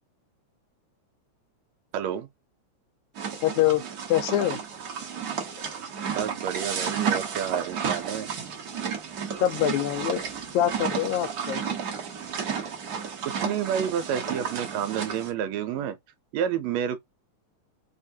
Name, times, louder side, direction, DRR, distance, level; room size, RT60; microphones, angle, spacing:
voice 1, 1.9-2.3 6.2-8.3 11.8-11.9 13.4-16.0 16.3-17.0, right 9 dB, 75° right, 1.8 m, -29 dB
sound 1, 3.2-15.3, right 6 dB, 60° right, 1.0 m, -32 dB
voice 2, 3.4-3.8 4.1-4.6 9.4-10.2 10.5-11.6, left 12 dB, 85° left, 2.0 m, -24 dB
4.6 x 3.0 x 2.7 m
omnidirectional pair, 3.3 m